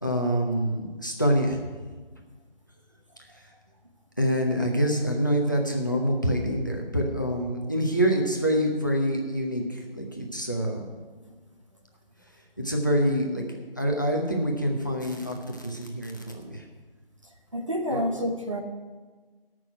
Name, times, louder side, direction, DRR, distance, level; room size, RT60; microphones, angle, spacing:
voice 1, 0.0-1.6 4.2-10.9 12.6-16.6 17.9-18.0, equal, 20° left, 1 dB, 0.9 m, -26 dB
voice 2, 17.5-18.6, equal, 35° right, 3 dB, 0.9 m, -28 dB
13.5 x 6.3 x 7.7 m, 1.4 s
figure-of-eight pair, 180°, 30 cm